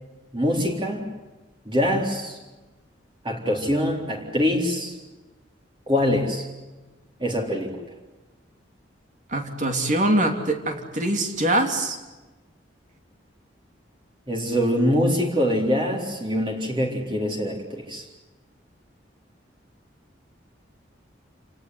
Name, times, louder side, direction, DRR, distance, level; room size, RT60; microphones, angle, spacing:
voice 1, 0.3-1.1 1.7-2.4 3.2-4.9 5.9-6.5 7.2-7.8 14.3-18.1, equal, 25° right, 1 dB, 3.8 m, -24 dB
voice 2, 9.3-12.0, right 1 dB, 40° right, 4 dB, 3.1 m, -23 dB
28.5 x 18.0 x 9.8 m, 1.1 s
head